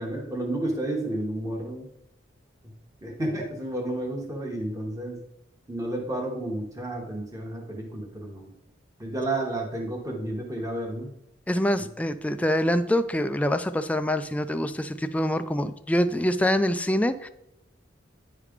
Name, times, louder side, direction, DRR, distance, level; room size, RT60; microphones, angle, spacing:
voice 1, 0.0-1.9 3.0-5.2 5.7-8.5 9.0-11.1, right 1 dB, 15° right, -1 dB, 1.2 m, -31 dB
voice 2, 11.5-17.3, equal, 5° left, 10 dB, 0.3 m, -25 dB
9.7 x 3.3 x 5.0 m, 0.84 s
head